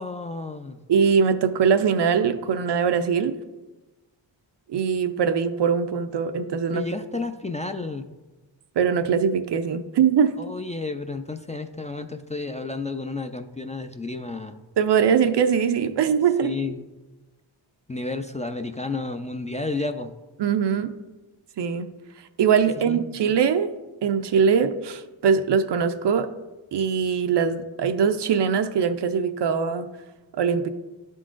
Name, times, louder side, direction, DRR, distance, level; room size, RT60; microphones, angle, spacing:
voice 1, 0.0-0.8 6.7-8.0 10.4-14.6 16.4-16.8 17.9-20.1 22.8-23.2, left 3 dB, 15° left, 6 dB, 0.4 m, -31 dB
voice 2, 0.9-3.4 4.7-6.8 8.8-10.4 14.8-16.6 20.4-21.0 21.6-21.9 22.4-23.7 24.0-26.3 26.7-29.9 30.4-30.7, right 6 dB, 60° right, 10 dB, 0.6 m, -22 dB
11.0 x 3.8 x 2.5 m, 1.1 s
cardioid pair, 50°, 48 cm